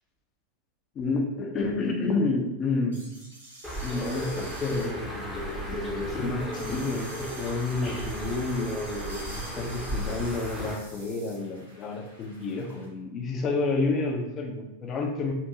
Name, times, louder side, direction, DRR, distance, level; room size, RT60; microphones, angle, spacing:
voice 1, 0.9-3.1 3.8-15.3, left 3 dB, 30° left, 1 dB, 0.6 m, -30 dB
sound 1, 2.9-12.8, right 1 dB, 70° right, 1.0 m, -48 dB
Bird, 3.6-10.7, equal, 5° right, 0.9 m, -35 dB
4.8 x 2.6 x 2.7 m, 0.96 s
figure-of-eight pair, 90°, 0 cm